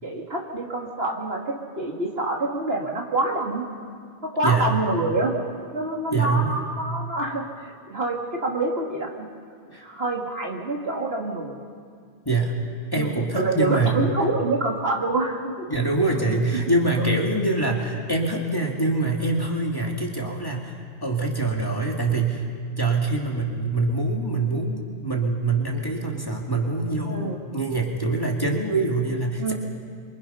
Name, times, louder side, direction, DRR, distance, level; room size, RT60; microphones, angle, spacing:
voice 1, 0.0-3.7 4.2-5.3 5.7-9.3 9.8-11.5 12.9-15.7 17.0-17.1 27.1-27.4 29.4-29.5, right 2 dB, 60° right, 0 dB, 2.6 m, -26 dB
voice 2, 4.4-4.8 6.1-6.7 9.7-9.8 12.3-12.5 12.9-14.1 15.7-22.4 22.8-29.5, right 3 dB, 20° left, -1 dB, 2.4 m, -24 dB
27.0 x 24.0 x 5.7 m, 2.1 s
omnidirectional pair, 1.2 m